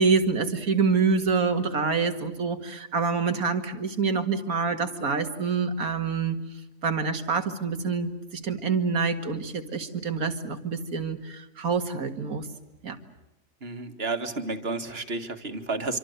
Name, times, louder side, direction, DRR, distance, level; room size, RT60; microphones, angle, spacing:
voice 1, 0.0-6.4 6.8-8.1 8.4-12.4 12.8-13.0, right 5 dB, 90° right, 7 dB, 2.5 m, -26 dB
voice 2, 13.6-16.0, right 3 dB, 45° right, 7 dB, 2.1 m, -31 dB
26.0 x 25.0 x 8.1 m, 0.91 s
omnidirectional pair, 1.5 m